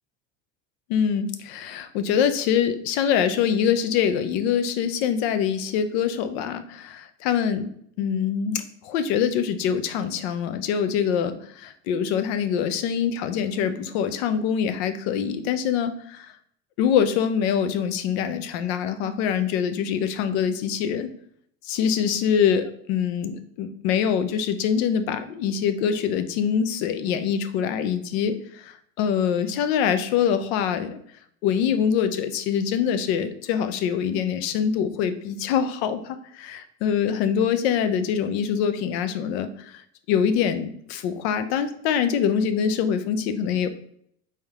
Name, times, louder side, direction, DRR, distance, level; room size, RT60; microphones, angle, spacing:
voice 1, 0.9-7.7 8.0-16.3 16.8-21.1 21.6-31.0 31.4-39.8 40.1-43.7, left 8 dB, 65° left, 10 dB, 0.6 m, -24 dB
4.2 x 3.5 x 3.5 m, 0.66 s
supercardioid pair, 160°, 34 cm